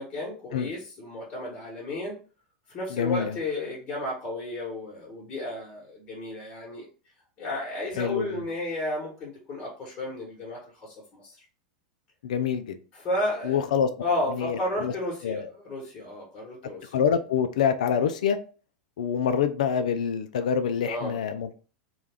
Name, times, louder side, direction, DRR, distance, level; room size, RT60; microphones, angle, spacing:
voice 1, 0.0-2.2 2.7-6.9 7.4-11.4 12.9-13.7 14.0-16.9 20.8-21.2, left 1 dB, 35° left, -4 dB, 1.2 m, -33 dB
voice 2, 2.9-3.3 8.0-8.4 12.2-12.8 13.4-13.9 14.3-14.9 15.2-15.5 16.9-18.4 19.0-21.5, left 7 dB, 80° left, 9 dB, 0.4 m, -26 dB
2.3 x 2.2 x 3.3 m, 0.38 s
hypercardioid pair, 110°, 4 cm